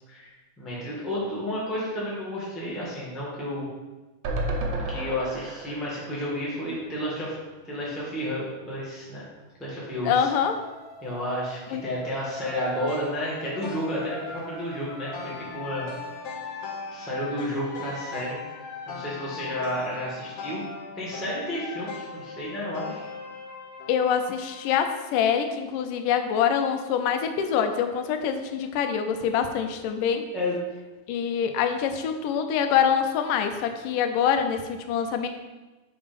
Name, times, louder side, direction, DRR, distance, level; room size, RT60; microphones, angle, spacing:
voice 1, 0.1-3.7 4.9-7.3 7.6-9.2 9.6-10.3 11.0-15.9 16.9-18.4 18.9-20.6 20.9-23.1 30.3-30.6, equal, ahead, -7 dB, 0.6 m, -31 dB
sound 1, 4.2-7.5 7.8-7.9 8.2-8.3, right 2 dB, 70° right, 1.6 m, -33 dB
voice 2, 10.0-10.6 11.7-11.8 23.9-30.3 31.1-35.3, left 8 dB, 90° left, 7 dB, 2.3 m, -25 dB
sound 2, 10.2-16.1, left 2 dB, 40° left, 1.2 m, -46 dB
sound 3, 12.4-24.8, left 4 dB, 70° left, 2.0 m, -39 dB
5.3 x 4.9 x 5.2 m, 1.2 s
omnidirectional pair, 3.7 m